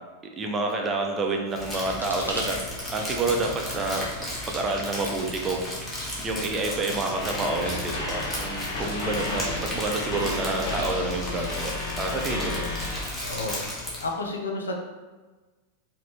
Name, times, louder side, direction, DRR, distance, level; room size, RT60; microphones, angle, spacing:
voice 1, 0.4-2.6 2.9-4.1 4.5-5.7 6.2-11.7 12.0-12.6, right 3 dB, 20° right, 2 dB, 0.7 m, -28 dB
sound 1, 1.4-6.1, equal, 90° left, 1.0 m, -42 dB
Crumpling crinkling, 1.5-14.1, left 1 dB, 10° left, 1.4 m, -35 dB
sound 2, 7.1-13.0, left 2 dB, 45° left, 1.0 m, -32 dB
voice 2, 13.2-13.6 14.0-14.8, left 2 dB, 70° left, 1 dB, 0.7 m, -31 dB
4.8 x 2.9 x 3.5 m, 1.3 s
figure-of-eight pair, 90°, 0 cm